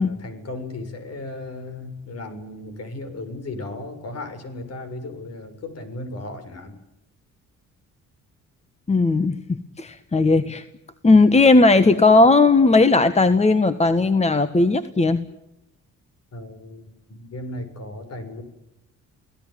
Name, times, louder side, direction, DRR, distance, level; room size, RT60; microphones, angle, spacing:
voice 1, 0.0-6.8 16.3-18.4, left 2 dB, 55° left, 10 dB, 6.8 m, -35 dB
voice 2, 8.9-10.6 11.0-15.2, left 3 dB, 20° left, 11 dB, 1.5 m, -17 dB
28.0 x 18.5 x 9.3 m, 0.87 s
cardioid pair, 90°, 30 cm